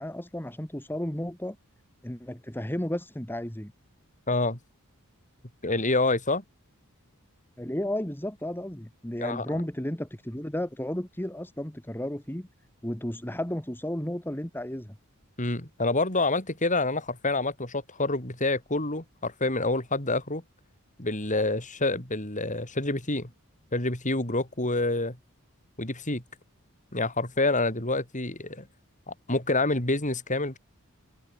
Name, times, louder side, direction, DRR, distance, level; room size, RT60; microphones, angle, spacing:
voice 1, 0.0-1.6 2.0-3.7 7.6-12.5 12.8-15.0, left 1 dB, 10° left, 1.9 m, -33 dB
voice 2, 4.3-4.6 5.6-6.4 9.2-9.6 15.4-20.4 21.0-23.3 23.7-25.2 25.8-26.2 26.9-28.7 29.1-30.6, left 2 dB, 35° left, 6.1 m, -27 dB
open air
head